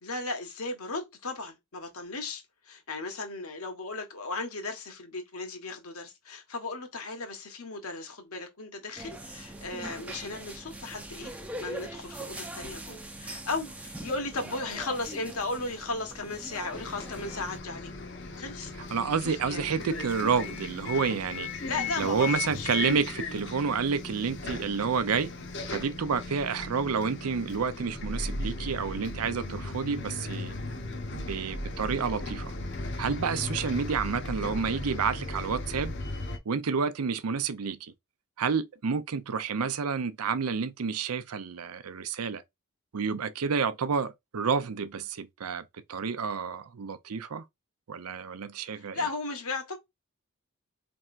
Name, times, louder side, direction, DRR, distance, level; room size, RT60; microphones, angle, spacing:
voice 1, 0.0-11.3 11.6-17.9 18.4-18.7 19.2-19.7 21.6-22.7 48.7-49.8, left 3 dB, 80° left, 1.4 m, -36 dB
sound 1, 9.0-17.6, right 1 dB, 5° right, 0.5 m, -42 dB
Bus, 16.7-36.4, left 3 dB, 50° left, 0.9 m, -37 dB
voice 2, 18.9-21.5 22.0-25.3 25.7-30.5 31.1-32.5 33.0-35.9 36.5-37.9 38.4-42.4 42.9-45.6 45.9-47.4 47.9-49.1, right 5 dB, 90° right, 0.6 m, -29 dB
4.4 x 3.4 x 2.5 m
head